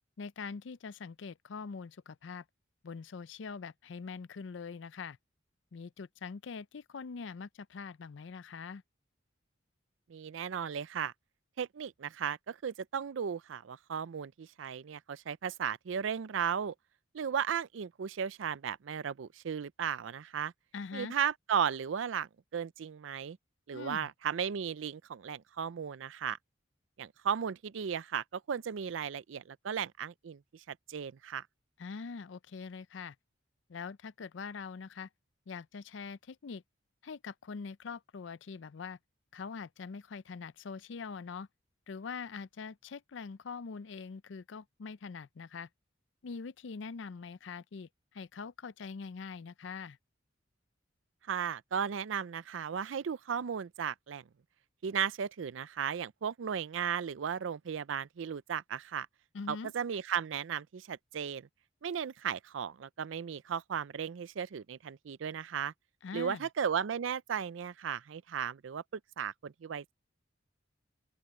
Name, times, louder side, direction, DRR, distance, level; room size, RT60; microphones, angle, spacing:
voice 1, 0.2-2.5 2.8-5.2 5.7-8.8 20.7-21.1 23.7-24.1 31.8-33.2 33.7-35.1 35.5-36.6 37.0-39.0 39.3-41.5 41.9-45.7 46.2-50.0 59.3-59.7 66.0-66.5, left 5 dB, 70° left, 0.5 m, -43 dB
voice 2, 10.1-11.1 11.6-16.7 17.1-20.5 20.9-23.4 23.7-26.4 27.0-31.5 51.3-54.2 54.8-59.1 59.5-61.5 61.8-65.7 66.1-68.8 69.2-69.9, right 7 dB, 75° right, 0.4 m, -35 dB
open air
head